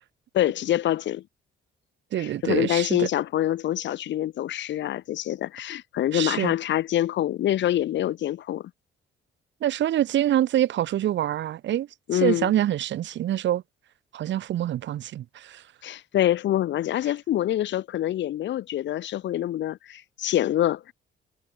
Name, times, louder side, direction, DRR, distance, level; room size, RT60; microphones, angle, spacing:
voice 1, 0.3-1.2 2.2-8.6 12.1-12.5 15.8-20.9, left 12 dB, 65° left, 0.7 m, -25 dB
voice 2, 2.1-3.1 6.1-6.5 9.6-13.6 14.1-15.6, right 12 dB, 65° right, 1.0 m, -25 dB
cardioid pair, 90°, 20 cm